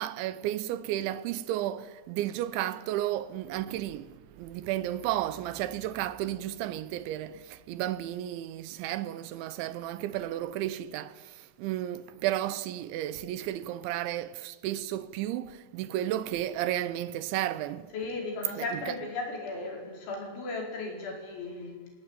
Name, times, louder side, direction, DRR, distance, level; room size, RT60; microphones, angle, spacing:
voice 1, 0.0-17.9 18.6-18.7, right 13 dB, 85° right, 3.3 m, -33 dB
voice 2, 17.9-21.7, left 3 dB, 85° left, 7.5 m, -36 dB
27.0 x 18.0 x 9.2 m
omnidirectional pair, 5.2 m